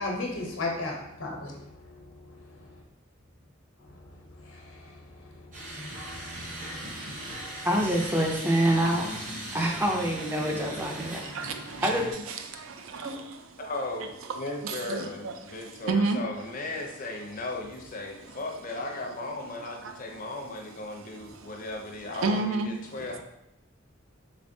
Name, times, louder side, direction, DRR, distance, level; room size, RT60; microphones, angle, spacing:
voice 1, 0.0-2.6 4.0-4.1 4.3-6.1 6.4-7.7, left 2 dB, 90° left, -1 dB, 0.8 m, -38 dB
sound 1, 5.5-12.1, right 1 dB, 40° right, 0.8 m, -38 dB
voice 2, 7.6-9.1 9.5-11.2 11.8-12.0 13.0-13.2, right 1 dB, 10° right, 0 dB, 0.4 m, -26 dB
voice 3, 10.3-13.7 14.3-16.4 18.2-18.4 19.8-20.0 22.1-23.2, right 3 dB, 80° right, 7 dB, 0.4 m, -33 dB
voice 4, 13.6-23.2, left 2 dB, 40° left, 2 dB, 0.5 m, -36 dB
3.3 x 3.3 x 2.6 m, 0.85 s
head